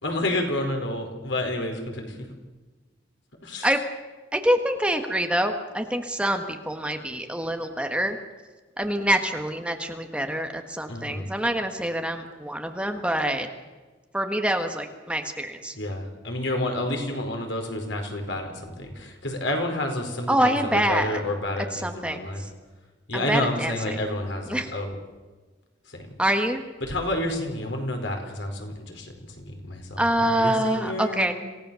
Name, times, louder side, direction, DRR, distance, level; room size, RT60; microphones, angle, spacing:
voice 1, 0.0-2.2 3.4-3.7 10.9-11.3 15.7-22.4 23.1-24.9 25.9-26.1 26.8-31.3, left 1 dB, 85° left, 3 dB, 4.7 m, -30 dB
voice 2, 4.3-8.2 8.8-13.5 14.1-15.7 20.3-21.2 21.7-22.5 23.1-23.7 24.5-24.7 26.2-26.6 30.0-31.3, right 1 dB, 5° right, 5 dB, 1.5 m, -25 dB
27.0 x 17.0 x 7.0 m, 1.3 s
head